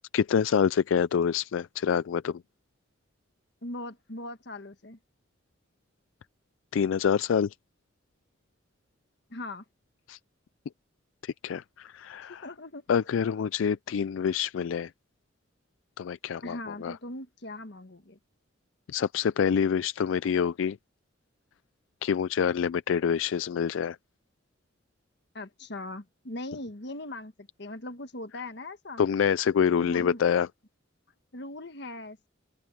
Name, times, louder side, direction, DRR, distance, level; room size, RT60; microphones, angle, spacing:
voice 1, 0.1-2.4 6.7-7.5 10.1-10.2 11.2-12.5 12.9-14.9 16.0-16.9 18.9-20.8 22.0-24.0 29.0-30.5, left 7 dB, 85° left, 0.4 m, -26 dB
voice 2, 3.6-5.0 9.3-9.6 12.3-13.1 16.4-18.2 25.3-29.0 29.8-30.2 31.3-32.3, left 2 dB, 60° left, 1.6 m, -40 dB
head